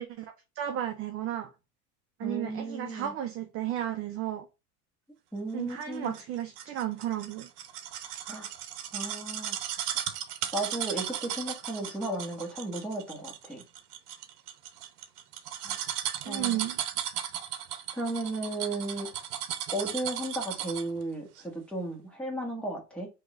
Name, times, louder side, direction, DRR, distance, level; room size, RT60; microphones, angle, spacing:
voice 1, 0.0-1.5 2.2-4.5 5.5-7.5 16.2-16.8, right 11 dB, 30° right, 0.5 m, -33 dB
voice 2, 2.2-3.1 5.3-6.2 8.3-8.5 8.9-9.6 10.5-13.6 15.6-15.9 16.2-16.6 17.9-19.1 19.7-23.1, right 1 dB, ahead, 1.7 m, -35 dB
sound 1, 5.8-21.0 21.4-21.5, right 10 dB, 75° right, 0.9 m, -36 dB
3.9 x 3.0 x 3.7 m
supercardioid pair, 120°, 47 cm